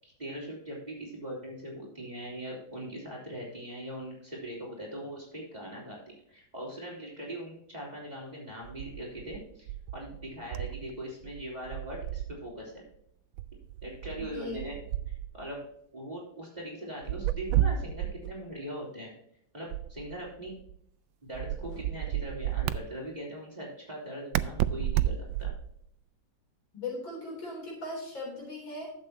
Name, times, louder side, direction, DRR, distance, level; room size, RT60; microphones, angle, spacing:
voice 1, 0.0-12.8 13.8-14.8 15.3-15.6 15.9-19.1 19.5-20.5 21.2-25.5, equal, 20° right, -3 dB, 3.9 m, -41 dB
sound 1, 8.6-11.0 11.2-12.5 13.4-15.5 17.0-18.4 19.7-20.8 21.3-22.8 24.3-25.8, right 12 dB, 80° right, 1.3 m, -32 dB
voice 2, 14.2-14.6 26.7-28.9, left 2 dB, 75° left, -1 dB, 4.7 m, -38 dB
12.0 x 7.8 x 2.9 m, 0.70 s
omnidirectional pair, 2.1 m